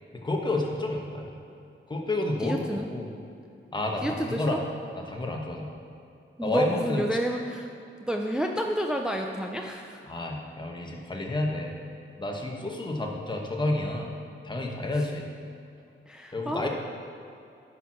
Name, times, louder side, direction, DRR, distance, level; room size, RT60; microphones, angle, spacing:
voice 1, 0.1-1.3 1.9-3.1 3.7-4.6 5.0-5.7 6.4-7.0 10.1-11.7 12.2-14.1 14.4-15.3 16.3-16.7, left 2 dB, 20° left, 0 dB, 1.2 m, -30 dB
voice 2, 2.4-2.9 4.0-4.6 6.4-7.7 8.1-10.0 14.9-15.0 16.1-16.7, right 1 dB, 5° right, 2 dB, 0.5 m, -29 dB
9.9 x 4.6 x 6.1 m, 2.6 s
wide cardioid pair, 105°, 21 cm